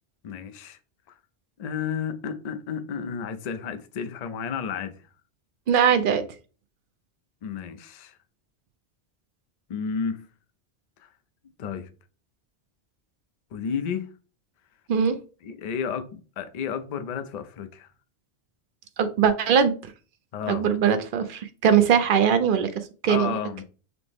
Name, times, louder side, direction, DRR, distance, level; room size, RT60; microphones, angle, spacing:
voice 1, 0.2-0.8 1.1-1.2 1.6-5.0 7.4-8.2 9.7-10.2 11.6-11.9 13.5-14.1 15.4-17.9 20.3-20.7 23.1-23.6, left 7 dB, 50° left, 0.5 m, -32 dB
voice 2, 5.7-6.2 14.9-15.2 19.0-19.9 20.5-23.3, right 7 dB, 60° right, 0.6 m, -21 dB
6.0 x 2.0 x 3.4 m
omnidirectional pair, 1.1 m